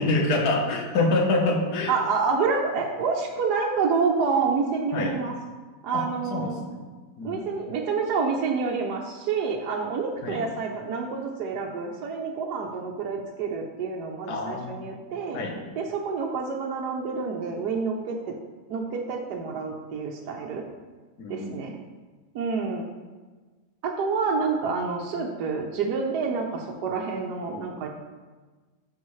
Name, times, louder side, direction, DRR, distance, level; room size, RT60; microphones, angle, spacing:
voice 1, 0.0-2.0 4.9-5.1 5.9-6.9 7.2-7.4 10.2-10.4 14.3-14.9 15.3-15.6 21.2-21.6, left 2 dB, 75° left, 1 dB, 1.5 m, -26 dB
voice 2, 1.9-5.3 5.8-6.6 7.2-15.4 15.8-18.4 18.7-20.6 21.3-21.7 22.3-22.9 23.8-27.9, right 5 dB, 80° right, 0 dB, 1.3 m, -28 dB
13.0 x 4.4 x 3.1 m, 1.3 s
omnidirectional pair, 1.7 m